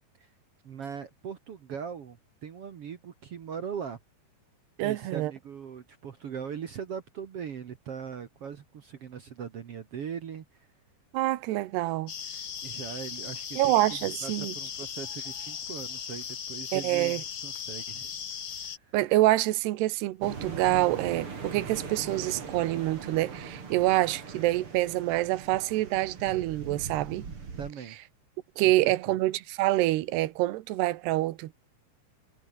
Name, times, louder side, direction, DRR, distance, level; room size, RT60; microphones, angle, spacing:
voice 1, 0.6-4.0 4.8-10.7 12.6-18.2 18.6-18.9 27.6-28.0 28.8-29.2, right 7 dB, 60° right, 1.6 m, -40 dB
voice 2, 4.8-5.3 11.1-12.1 13.6-14.5 16.7-17.2 18.9-27.3 28.6-31.6, right 17 dB, 80° right, 3.2 m, -26 dB
sound 1, 12.1-18.8, left 7 dB, 55° left, 1.3 m, -38 dB
sound 2, 20.2-27.7, right 5 dB, 35° right, 3.8 m, -40 dB
omnidirectional pair, 4.7 m